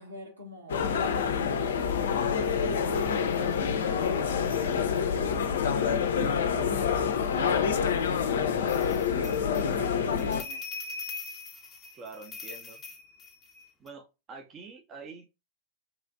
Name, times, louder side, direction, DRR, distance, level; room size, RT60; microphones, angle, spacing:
voice 1, 0.0-1.9 2.4-10.7, equal, 85° right, 1.1 m, -47 dB
sound 1, 0.7-10.4, left 7 dB, 65° left, 0.3 m, -27 dB
sound 2, 8.7-13.9, left 3 dB, 20° left, 0.6 m, -42 dB
voice 2, 11.9-12.8 13.8-15.3, right 4 dB, 30° right, 0.5 m, -46 dB
2.9 x 2.4 x 2.4 m
figure-of-eight pair, 90°, 0 cm